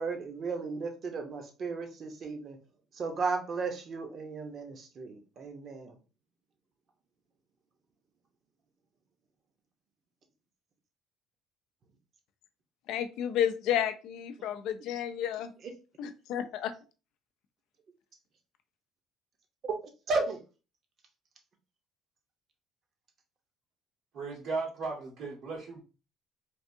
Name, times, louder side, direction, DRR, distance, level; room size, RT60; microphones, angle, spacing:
voice 1, 0.0-2.6 2.9-5.9 15.6-15.7 20.1-20.4, right 4 dB, 50° right, 0.8 m, -34 dB
voice 2, 12.9-15.5 16.0-16.7, left 10 dB, 75° left, 0.4 m, -31 dB
voice 3, 24.1-25.8, right 4 dB, 80° right, 1.3 m, -36 dB
3.4 x 2.5 x 2.6 m
supercardioid pair, 85°, 0 cm